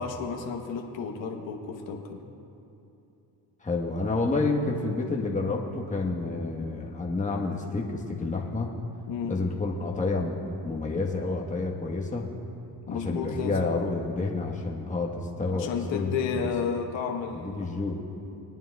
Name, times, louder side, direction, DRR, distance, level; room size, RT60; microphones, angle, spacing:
voice 1, 0.0-2.2 9.1-9.4 12.9-13.6 15.5-17.7, left 6 dB, 65° left, 1 dB, 1.2 m, -32 dB
voice 2, 3.6-8.7 9.3-10.4 10.6-12.3 12.9-16.5 17.3-17.9, left 3 dB, 15° left, -1 dB, 1.3 m, -29 dB
22.0 x 9.0 x 2.3 m, 2.8 s
supercardioid pair, 70°, 48 cm